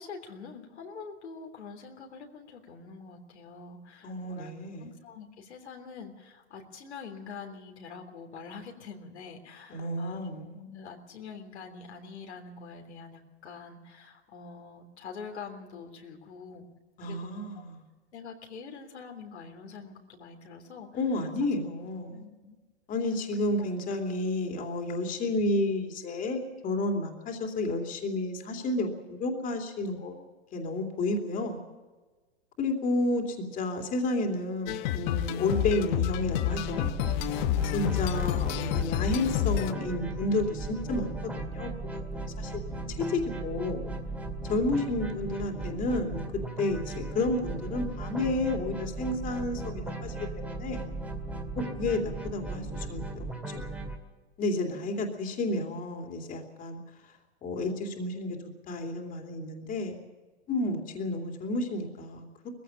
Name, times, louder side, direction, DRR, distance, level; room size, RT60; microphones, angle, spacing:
voice 1, 0.0-4.5 4.8-16.6 17.0-17.6 18.1-20.9 22.1-22.6 23.6-23.8 42.7-43.0 54.6-54.9, left 5 dB, 85° left, 3 dB, 3.3 m, -45 dB
voice 2, 4.0-4.9 9.7-10.5 17.0-17.8 20.9-22.2 22.9-30.2 30.5-31.6 32.6-36.9 37.6-42.6 43.0-43.8 44.5-46.2 46.6-50.8 51.6-53.6 54.4-56.8 57.4-58.4 58.7-59.9 60.5-62.2, left 2 dB, 25° left, 3 dB, 2.8 m, -31 dB
sound 1, 34.7-39.7, left 13 dB, 45° left, 0.9 m, -29 dB
sound 2, 36.5-54.0, right 2 dB, 5° right, 2.2 m, -37 dB
20.0 x 15.5 x 8.8 m, 1.3 s
hypercardioid pair, 130°, 33 cm